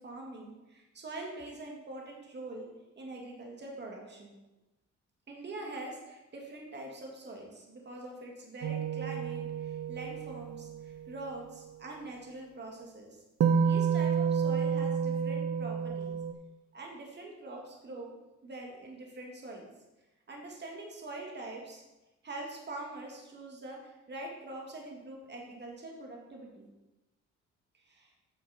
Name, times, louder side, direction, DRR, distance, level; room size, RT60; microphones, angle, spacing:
voice 1, 0.0-2.7 3.0-4.3 5.3-13.2 13.6-16.2 16.7-18.1 18.4-19.7 20.3-21.8 22.2-26.7 27.7-28.1, right 2 dB, 35° right, 0 dB, 2.2 m, -44 dB
sound 1, 8.6-10.9 13.4-16.3, right 7 dB, 55° right, 0.8 m, -30 dB
9.0 x 6.6 x 4.4 m, 1.0 s
cardioid pair, 90°, 30 cm